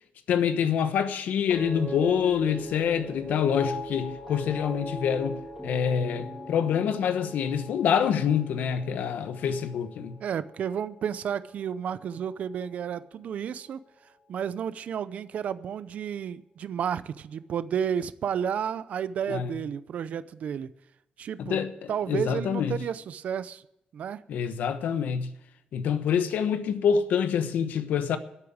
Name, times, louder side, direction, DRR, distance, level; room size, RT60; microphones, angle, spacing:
voice 1, 0.3-10.1 19.3-19.5 21.4-22.7 24.3-25.3 25.7-28.2, left 7 dB, 85° left, 1.1 m, -26 dB
sound 1, 1.5-11.9 12.1-12.7, equal, 5° right, 3.0 m, -40 dB
voice 2, 10.2-13.8 14.3-20.7 21.2-21.6 21.9-23.6 23.9-24.2, right 8 dB, 60° right, 0.6 m, -32 dB
13.0 x 8.4 x 8.7 m
wide cardioid pair, 165°, 3 cm